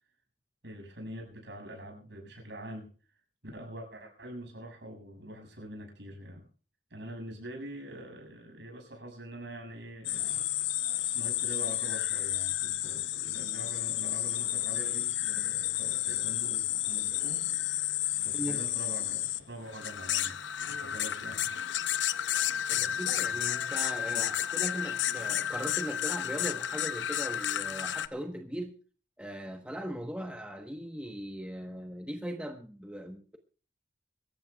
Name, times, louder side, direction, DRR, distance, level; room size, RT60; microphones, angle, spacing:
voice 1, 0.6-2.9 3.5-6.5 6.9-10.5 11.1-17.5 18.2-20.4 20.8-21.5 22.7-23.2 23.6-23.7 24.1-24.3, right 1 dB, 65° right, 3 dB, 6.8 m, -45 dB
sound 1, 10.0-28.1, left 11 dB, 75° left, 0.8 m, -31 dB
voice 2, 22.7-28.7 29.2-33.4, equal, 5° right, 4 dB, 1.1 m, -39 dB
25.0 x 14.0 x 2.3 m, 0.38 s
head